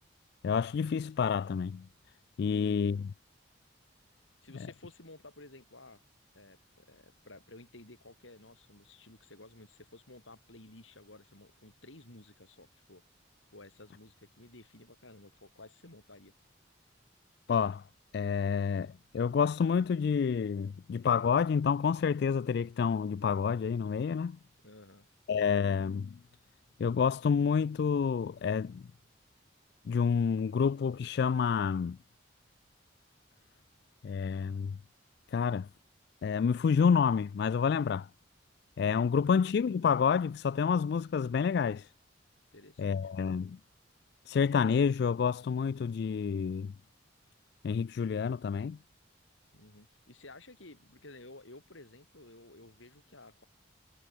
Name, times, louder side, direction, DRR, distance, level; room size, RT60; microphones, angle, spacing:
voice 1, 0.4-1.9 2.4-3.0 17.5-17.8 18.1-24.4 25.3-26.2 26.8-28.8 29.9-32.0 34.0-34.8 35.3-35.7 36.2-38.1 38.8-41.9 42.8-43.6 44.3-46.7 47.6-48.8, left 6 dB, 55° left, 0.3 m, -28 dB
voice 2, 2.4-3.0 4.4-6.0 6.3-13.0 13.5-16.3 24.6-25.1 42.5-43.3 49.5-53.4, left 2 dB, 90° left, 4.7 m, -54 dB
head